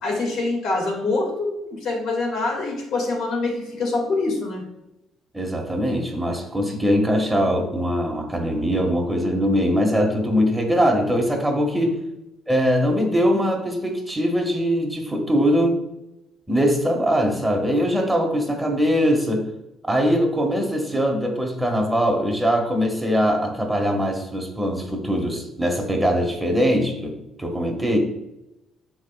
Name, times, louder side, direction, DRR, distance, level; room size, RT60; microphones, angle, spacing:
voice 1, 0.0-4.6 11.8-12.0, left 3 dB, 70° left, 1 dB, 2.1 m, -25 dB
voice 2, 5.3-12.0 12.5-15.8 16.5-19.5 19.9-28.0, equal, 10° right, 1 dB, 1.6 m, -22 dB
12.0 x 4.4 x 2.4 m, 0.90 s
cardioid pair, 90°, 0 cm